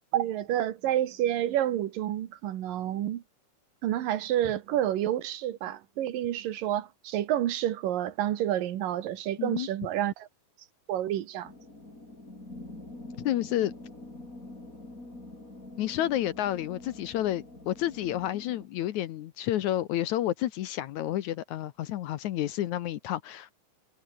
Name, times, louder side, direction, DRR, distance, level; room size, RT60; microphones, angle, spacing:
voice 1, 0.1-3.2 3.8-10.3 10.9-11.5, right 12 dB, 75° right, 3.1 m, -29 dB
sound 1, 11.4-18.7, left 2 dB, 20° left, 7.1 m, -45 dB
voice 2, 13.2-13.7 15.8-23.5, left 13 dB, 70° left, 2.1 m, -30 dB
omnidirectional pair, 3.9 m